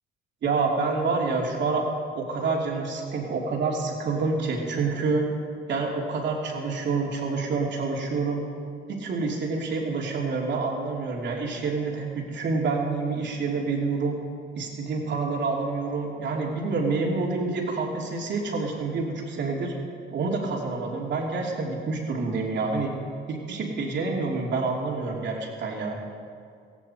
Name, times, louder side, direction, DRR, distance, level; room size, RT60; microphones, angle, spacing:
voice 1, 0.4-1.9 2.1-5.3 5.7-8.4 8.9-14.2 14.6-19.7 20.1-22.9 23.3-26.0, right 4 dB, 65° right, -1 dB, 3.0 m, -27 dB
17.5 x 16.0 x 4.6 m, 2.3 s
cardioid pair, 90°, 20 cm